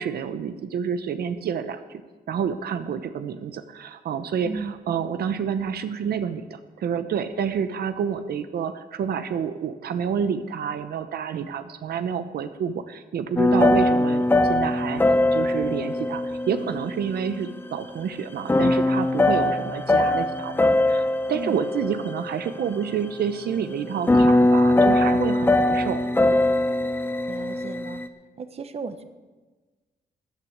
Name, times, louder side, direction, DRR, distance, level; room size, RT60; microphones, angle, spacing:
voice 1, 0.0-2.0 2.3-15.0 15.3-20.6 20.9-26.4, right 7 dB, 80° right, 10 dB, 0.8 m, -29 dB
voice 2, 4.4-5.0 13.5-13.8 21.3-21.6 27.3-28.0 28.4-29.0, right 4 dB, 40° right, 10 dB, 0.9 m, -35 dB
sound 1, 13.4-17.5 18.5-22.9 23.8-28.1, left 1 dB, 15° left, 0.7 m, -21 dB
13.5 x 9.0 x 8.0 m, 1.3 s
wide cardioid pair, 125°, 16 cm